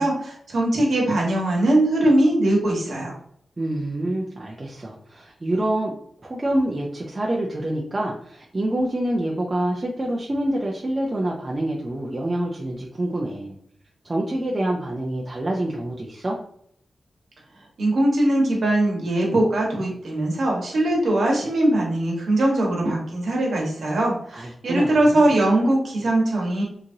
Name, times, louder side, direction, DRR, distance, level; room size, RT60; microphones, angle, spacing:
voice 1, 0.0-3.1 17.8-26.6, right 1 dB, 70° right, -2 dB, 1.0 m, -21 dB
voice 2, 3.6-5.9 6.2-13.6 14.0-16.4 24.3-25.3, right 1 dB, 25° right, -2 dB, 0.4 m, -26 dB
2.9 x 2.5 x 2.6 m, 0.67 s
wide cardioid pair, 125°, 0 cm